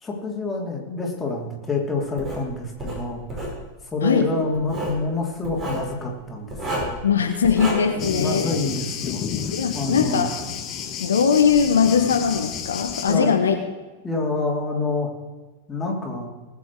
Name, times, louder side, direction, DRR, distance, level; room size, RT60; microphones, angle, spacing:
voice 1, 0.0-3.5 3.9-6.9 7.9-9.3 9.7-10.3 13.0-13.4 14.0-15.1 15.7-16.3, left 3 dB, 15° left, -1 dB, 3.2 m, -27 dB
Writing, 2.2-2.4 2.8-3.6 4.5-5.0 5.4-5.9 6.5-7.0 7.4-7.7, right 1 dB, 25° right, 4.9 m, -30 dB
voice 2, 7.0-8.6 9.5-10.3 11.0-13.5, left 6 dB, 70° left, 5 dB, 1.2 m, -20 dB
Thunder, 8.0-13.2, left 7 dB, 30° left, 1.4 m, -31 dB
19.5 x 8.7 x 4.8 m, 1.2 s
figure-of-eight pair, 90°, 0 cm